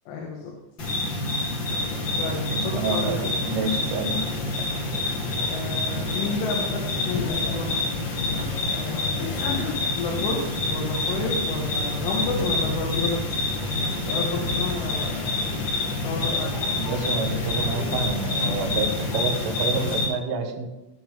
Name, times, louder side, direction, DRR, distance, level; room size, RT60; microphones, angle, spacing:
voice 1, 0.1-0.6 2.2-3.2 5.5-7.8 8.7-13.2 14.1-16.8, left 3 dB, 90° left, -1 dB, 3.9 m, -32 dB
sound 1, 0.8-20.1, left 2 dB, 50° left, 1.4 m, -27 dB
sound 2, 1.7-20.0, left 4 dB, 70° left, 2.7 m, -36 dB
voice 2, 2.5-4.2 16.3-16.5 16.8-20.7, right 4 dB, 90° right, 4 dB, 3.9 m, -28 dB
17.0 x 7.4 x 3.7 m, 1.0 s
omnidirectional pair, 5.5 m